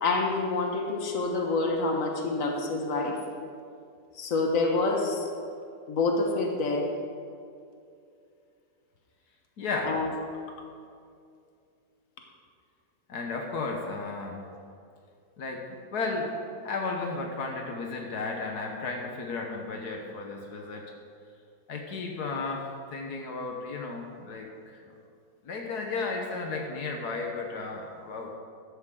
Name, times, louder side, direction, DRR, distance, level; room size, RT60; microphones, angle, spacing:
voice 1, 0.0-3.2 4.1-5.3 5.9-6.9 9.8-10.1, left 3 dB, 60° left, 1 dB, 1.8 m, -27 dB
voice 2, 9.6-10.0 13.1-14.5 15.4-20.9 21.7-24.9 25.4-28.4, left 3 dB, 80° left, 1 dB, 1.7 m, -34 dB
14.5 x 11.5 x 3.8 m, 2.4 s
omnidirectional pair, 1.6 m